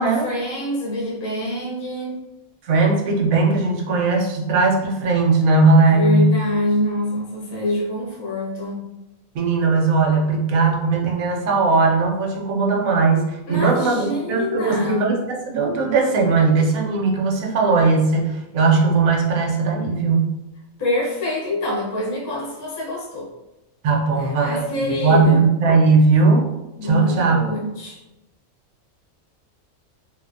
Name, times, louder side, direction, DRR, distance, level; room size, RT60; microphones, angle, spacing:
voice 1, 0.2-2.2 5.9-8.9 13.5-15.1 20.8-23.3 24.1-25.4 26.8-28.0, left 1 dB, 30° left, -4 dB, 0.4 m, -25 dB
voice 2, 2.6-6.3 9.3-20.3 23.8-26.5 26.8-27.4, right 3 dB, 80° right, 0 dB, 1.0 m, -18 dB
3.0 x 2.0 x 2.5 m, 0.96 s
omnidirectional pair, 1.4 m